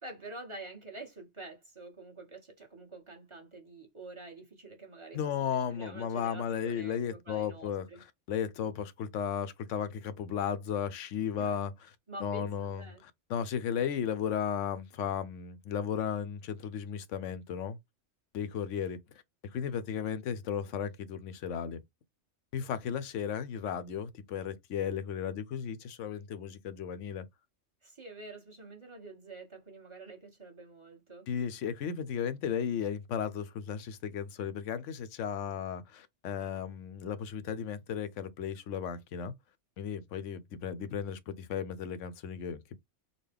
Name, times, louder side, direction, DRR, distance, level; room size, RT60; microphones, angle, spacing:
voice 1, 0.0-5.2 5.5-8.0 11.4-11.7 12.1-13.0 27.8-31.3, right 2 dB, 25° right, 1.1 m, -47 dB
voice 2, 5.1-11.9 12.2-17.8 18.3-19.2 19.5-21.8 22.5-27.3 31.3-39.3 39.8-42.8, left 8 dB, 85° left, 1.0 m, -35 dB
4.0 x 2.1 x 3.3 m
omnidirectional pair, 1.2 m